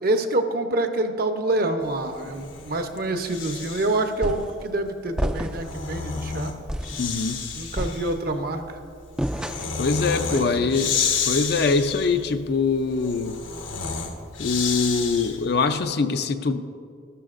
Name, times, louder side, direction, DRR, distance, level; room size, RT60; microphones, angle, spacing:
voice 1, 0.0-6.5 7.5-8.8 10.3-11.0, right 2 dB, 50° right, 6 dB, 0.7 m, -26 dB
Breathing, 2.1-4.1 5.3-15.6, left 6 dB, 80° left, 1.2 m, -31 dB
sound 1, 4.2-4.6 5.2-5.8 6.2-6.3 6.7-7.0 7.8-8.4 9.2-9.9, equal, 5° right, 0.3 m, -29 dB
voice 2, 7.0-7.4 9.8-10.9 11.3-13.4 14.4-16.6, left 4 dB, 55° left, 9 dB, 0.5 m, -23 dB
14.0 x 12.5 x 2.5 m, 2.3 s
head